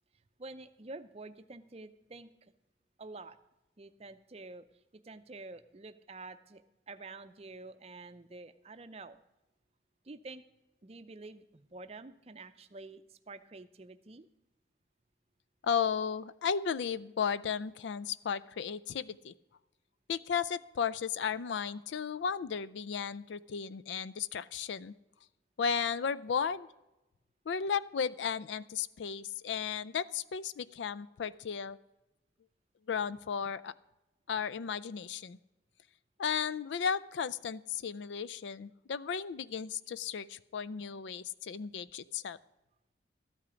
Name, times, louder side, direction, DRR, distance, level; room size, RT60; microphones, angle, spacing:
voice 1, 0.4-2.5 3.0-3.4 3.8-4.7 4.9-9.2 10.0-10.4 10.8-14.3, right 3 dB, 35° right, 11 dB, 0.5 m, -48 dB
voice 2, 15.6-19.3 20.1-24.9 25.6-26.7 27.5-31.8 32.9-33.7 34.3-35.4 36.2-42.4, left 7 dB, 80° left, 17 dB, 0.4 m, -34 dB
13.0 x 8.9 x 5.0 m, 0.99 s
head